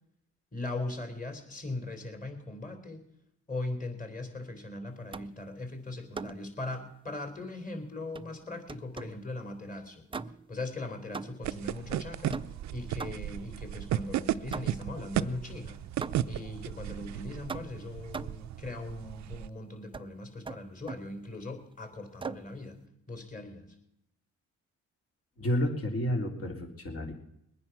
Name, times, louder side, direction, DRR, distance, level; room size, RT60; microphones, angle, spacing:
voice 1, 0.5-3.0 3.5-10.0 10.5-15.8 16.3-22.8 23.1-23.7, left 2 dB, 25° left, 6 dB, 3.7 m, -39 dB
sound 1, 5.1-5.5 6.1-6.5 8.1-9.3 10.1-10.6 11.1-11.6 12.3-13.5 14.5-15.0 16.0-16.5 17.5-18.5 19.9-20.1 20.4-21.1 22.2-22.5, right 4 dB, 15° right, 0.5 m, -41 dB
sound 2, 11.4-19.5, right 12 dB, 65° right, 0.6 m, -35 dB
voice 2, 25.4-27.1, equal, 50° left, 2 dB, 3.5 m, -30 dB
21.0 x 9.7 x 6.0 m, 0.78 s
cardioid pair, 90°, 30 cm